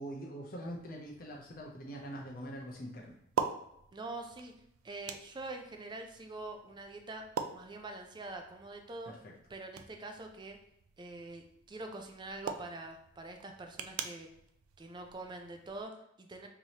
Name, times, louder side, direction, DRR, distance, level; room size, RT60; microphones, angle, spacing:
voice 1, 0.0-3.2, right 1 dB, 45° left, -1 dB, 0.6 m, -43 dB
sound 1, 0.6-15.8, right 6 dB, 90° right, 0.4 m, -45 dB
voice 2, 3.9-4.5 4.8-7.3 7.5-9.1 9.5-10.6 11.0-14.3 14.8-16.5, right 2 dB, 20° right, 4 dB, 0.4 m, -45 dB
4.7 x 2.9 x 2.8 m, 0.76 s
head